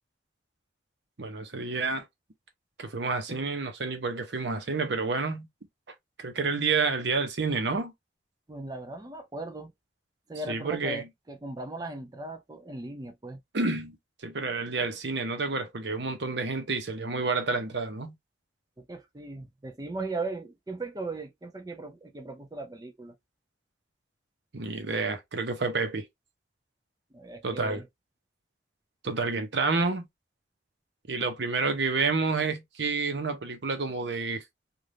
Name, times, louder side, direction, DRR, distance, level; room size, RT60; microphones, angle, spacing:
voice 1, 1.2-2.0 2.8-5.5 6.2-7.9 10.5-11.1 13.5-14.0 14.2-18.1 24.5-26.0 27.4-27.8 29.0-30.1 31.1-34.4, right 4 dB, 70° right, 0.8 m, -29 dB
voice 2, 8.5-9.7 10.3-13.4 18.8-23.1 27.1-27.9, right 2 dB, 20° right, 0.4 m, -38 dB
3.3 x 2.4 x 2.5 m
head